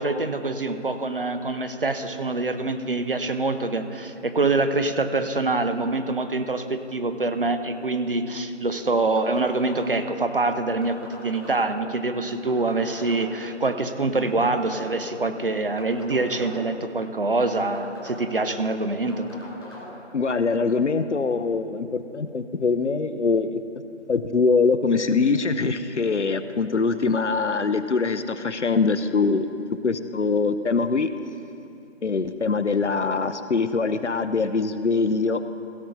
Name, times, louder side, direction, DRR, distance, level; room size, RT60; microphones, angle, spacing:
voice 1, 0.0-19.3, right 3 dB, 50° right, 8 dB, 0.7 m, -25 dB
sound 1, 9.2-10.2 10.8-11.9 12.5-13.5 14.1-15.2 15.8-16.8 17.4-18.5 19.1-19.9, left 2 dB, 20° left, 1.3 m, -42 dB
voice 2, 20.1-23.6 24.1-29.5 29.8-31.1 32.0-35.5, left 4 dB, 70° left, 11 dB, 0.6 m, -23 dB
16.0 x 5.8 x 5.1 m, 2.8 s
figure-of-eight pair, 160°, 36 cm